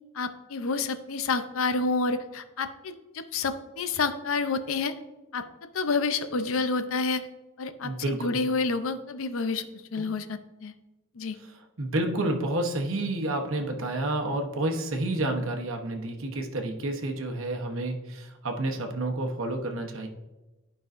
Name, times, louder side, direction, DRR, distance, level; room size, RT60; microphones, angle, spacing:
voice 1, 0.1-4.9 5.3-5.5 5.7-7.2 7.6-9.7 9.9-10.7 11.2-11.4, left 4 dB, 65° left, 10 dB, 0.6 m, -29 dB
voice 2, 7.8-8.3 10.0-10.1 11.8-20.1, right 2 dB, 60° right, 3 dB, 1.0 m, -30 dB
12.0 x 5.4 x 2.5 m, 1.1 s
head